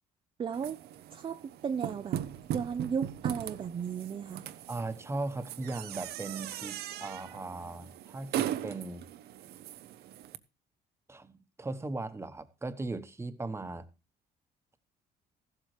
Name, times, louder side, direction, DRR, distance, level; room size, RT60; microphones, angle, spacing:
voice 1, 0.4-0.8 1.1-2.2 2.5-4.5, right 7 dB, 30° right, 0.5 m, -35 dB
sound 1, 0.5-10.4, right 11 dB, 75° right, 0.8 m, -39 dB
voice 2, 4.7-9.1 11.1-13.9, right 2 dB, 15° right, 1.1 m, -38 dB
14.5 x 12.0 x 3.3 m
cardioid pair, 110°, 17 cm